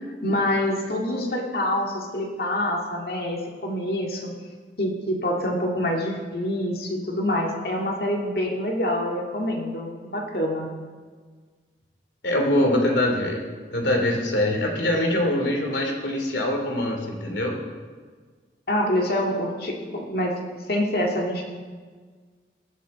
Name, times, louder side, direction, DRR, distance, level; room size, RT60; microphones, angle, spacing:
voice 1, 0.2-4.3 4.8-10.7 18.7-21.4, left 1 dB, 60° left, 0 dB, 2.1 m, -26 dB
voice 2, 12.2-13.4 13.7-17.5, left 1 dB, 85° left, 1 dB, 2.8 m, -23 dB
19.5 x 11.5 x 4.2 m, 1.5 s
head